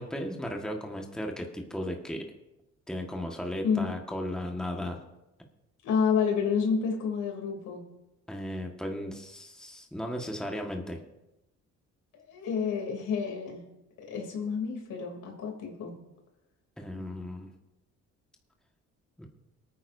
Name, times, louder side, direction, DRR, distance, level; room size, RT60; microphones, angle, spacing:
voice 1, 0.0-2.3 2.9-5.0 8.3-11.0 16.8-17.5 19.2-19.3, left 1 dB, ahead, 1 dB, 1.6 m, -35 dB
voice 2, 5.8-7.8 12.1-13.6 14.1-15.9, left 6 dB, 80° left, 1 dB, 3.1 m, -29 dB
25.0 x 9.3 x 2.7 m, 0.95 s
cardioid pair, 90°, 30 cm